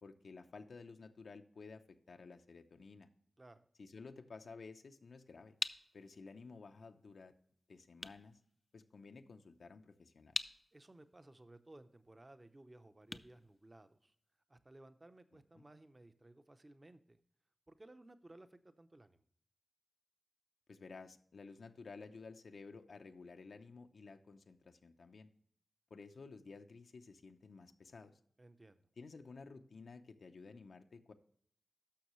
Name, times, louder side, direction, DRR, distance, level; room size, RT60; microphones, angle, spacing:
voice 1, 0.0-3.1 3.8-5.6 5.9-7.3 7.7-8.4 8.7-10.4 15.3-15.6 20.7-25.3 25.9-28.2 29.0-31.1, left 4 dB, 85° left, 7 dB, 0.7 m, -54 dB
sound 1, 4.9-14.4, left 2 dB, 30° left, 0.4 m, -47 dB
voice 2, 10.7-14.1 14.5-17.2 17.7-19.2 28.4-28.8, right 2 dB, 25° right, 10 dB, 0.7 m, -59 dB
11.5 x 6.4 x 3.1 m, 0.63 s
wide cardioid pair, 110°, 0 cm